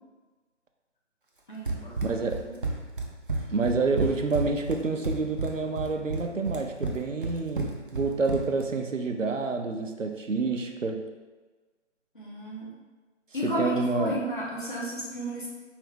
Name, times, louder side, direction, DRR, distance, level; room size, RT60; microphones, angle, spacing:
voice 1, 1.5-2.5 12.1-12.7 13.3-15.5, equal, 40° left, -5 dB, 1.2 m, -33 dB
Run, 1.7-8.7, right 2 dB, 45° right, 0.5 m, -32 dB
voice 2, 2.0-2.5 3.5-11.1 13.4-14.2, right 3 dB, 85° right, 4 dB, 0.6 m, -28 dB
4.8 x 2.7 x 3.5 m, 1.3 s
figure-of-eight pair, 155°, 37 cm